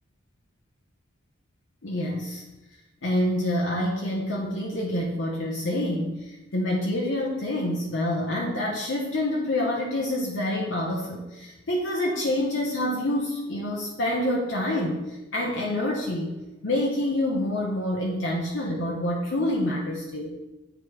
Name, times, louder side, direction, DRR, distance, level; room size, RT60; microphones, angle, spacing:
voice 1, 1.8-2.4 3.0-20.3, left 1 dB, 65° left, -2 dB, 0.8 m, -27 dB
8.9 x 3.0 x 4.7 m, 1.1 s
head